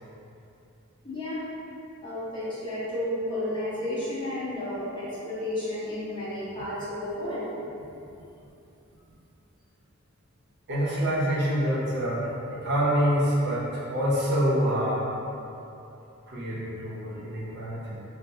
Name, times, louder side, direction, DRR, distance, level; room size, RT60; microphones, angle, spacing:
voice 1, 1.0-1.4 2.0-7.5, left 1 dB, 20° left, -10 dB, 0.7 m, -32 dB
voice 2, 10.7-15.0 16.2-18.0, equal, 50° right, -7 dB, 0.6 m, -26 dB
4.3 x 2.0 x 2.7 m, 2.8 s
head